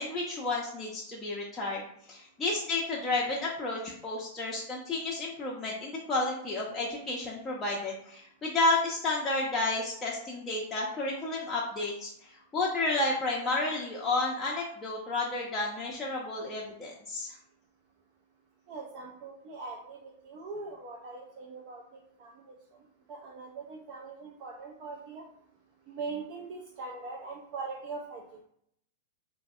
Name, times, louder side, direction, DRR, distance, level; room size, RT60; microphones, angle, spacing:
voice 1, 0.0-1.8 2.1-17.4, left 2 dB, 20° left, -5 dB, 0.5 m, -31 dB
voice 2, 18.7-22.5 23.1-25.2 25.9-28.2, right 4 dB, 45° right, -1 dB, 0.4 m, -41 dB
3.3 x 2.0 x 2.3 m, 0.71 s
hypercardioid pair, 100°, 0 cm